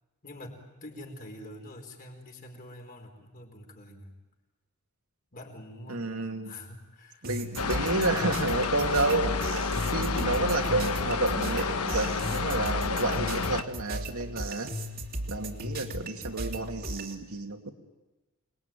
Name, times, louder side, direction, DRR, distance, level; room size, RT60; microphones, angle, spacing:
voice 1, 0.2-4.2 5.3-6.1 6.4-7.3, left 1 dB, 40° left, 2 dB, 4.6 m, -46 dB
voice 2, 5.9-6.5 7.2-9.6 9.9-14.7 15.3-17.7, right 2 dB, 75° right, 4 dB, 2.7 m, -30 dB
sound 1, 7.2-17.2, right 1 dB, 45° right, 2.5 m, -36 dB
sound 2, 7.6-13.6, left 4 dB, 90° left, 1.2 m, -30 dB
28.0 x 21.0 x 9.2 m, 1.1 s
head